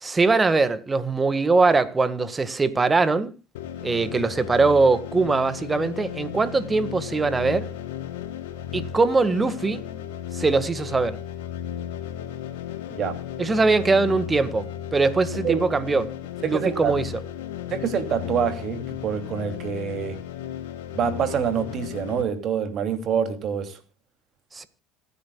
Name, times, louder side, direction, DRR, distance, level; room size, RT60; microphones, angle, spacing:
voice 1, 0.0-3.3 3.8-7.7 8.7-9.8 10.3-11.2 13.4-16.1 16.4-17.1 24.5-24.7, right 3 dB, 20° right, 1.7 m, -22 dB
sound 1, 3.5-22.2, left 10 dB, 85° left, 2.3 m, -35 dB
voice 2, 12.9-13.2 15.4-15.6 16.4-16.9 17.7-20.2 20.9-23.8, right 7 dB, 50° right, 2.8 m, -26 dB
26.5 x 9.8 x 2.3 m
hypercardioid pair, 80°, 0 cm